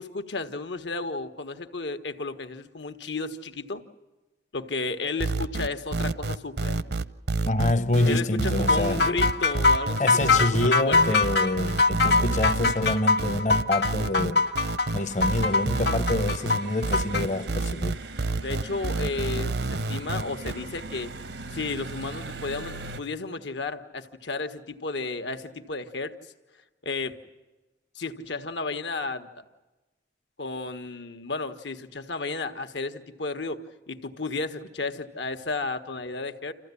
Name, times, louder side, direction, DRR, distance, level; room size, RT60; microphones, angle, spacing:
voice 1, 0.0-3.8 4.5-6.8 8.0-11.2 18.4-21.1 21.5-26.1 26.8-27.2 27.9-29.4 30.4-36.5, left 3 dB, 90° left, 1.5 m, -33 dB
sound 1, 5.2-20.5, right 2 dB, 70° right, 0.7 m, -28 dB
voice 2, 7.4-9.0 10.0-14.5 14.9-18.0, left 2 dB, 40° left, 0.7 m, -26 dB
sound 2, 8.7-17.2, left 3 dB, 70° left, 1.5 m, -22 dB
sound 3, 14.9-23.0, right 3 dB, 85° right, 1.0 m, -40 dB
27.5 x 15.0 x 9.8 m
head